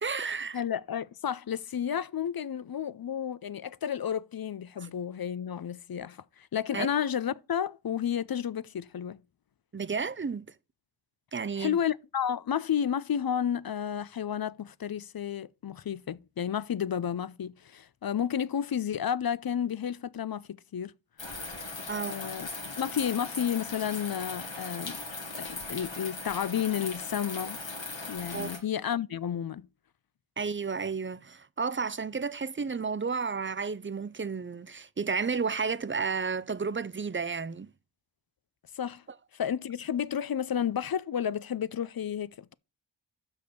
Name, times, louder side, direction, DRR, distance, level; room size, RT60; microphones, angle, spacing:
voice 1, 0.0-0.6 4.8-4.9 6.7-6.9 9.7-10.5 11.3-11.8 21.9-22.1 28.3-28.5 30.4-37.7, right 5 dB, 30° right, 0.5 m, -32 dB
voice 2, 0.5-9.2 11.6-20.9 22.1-22.5 22.8-25.0 25.3-27.6 28.1-29.7 38.7-39.0 39.3-42.5, left 9 dB, 55° left, 0.5 m, -31 dB
sound 1, 21.2-28.6, left 3 dB, 80° left, 2.2 m, -39 dB
6.3 x 5.3 x 6.7 m
wide cardioid pair, 45°, 45 cm